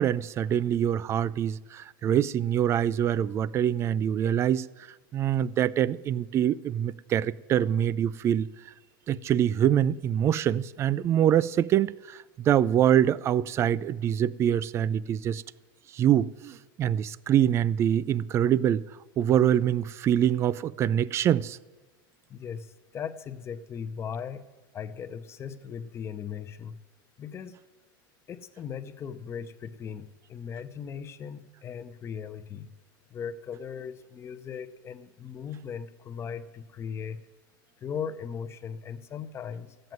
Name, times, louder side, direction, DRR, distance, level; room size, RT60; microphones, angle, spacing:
voice 1, 0.0-4.7 5.1-8.5 9.1-15.4 15.9-18.8 19.2-21.6, right 10 dB, 25° right, 0.3 m, -25 dB
voice 2, 22.3-24.5 24.7-26.8 27.2-27.5 28.3-32.7 33.1-37.2 37.8-39.9, left 7 dB, 20° left, 0.8 m, -38 dB
14.0 x 7.8 x 9.3 m
supercardioid pair, 145°, 11 cm